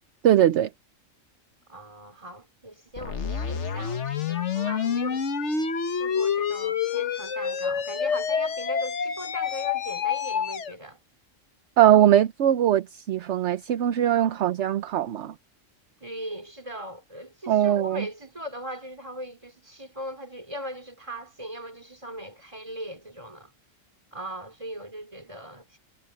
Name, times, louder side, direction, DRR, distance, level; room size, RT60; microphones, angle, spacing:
voice 1, 0.2-0.7 11.8-15.3 17.5-18.0, right 11 dB, 65° right, 0.9 m, -21 dB
voice 2, 1.7-5.7 6.0-11.0 16.0-23.5 24.1-25.8, equal, 25° right, 3.6 m, -39 dB
sound 1, 3.0-10.7, left 7 dB, 60° left, 1.4 m, -28 dB
omnidirectional pair, 1.4 m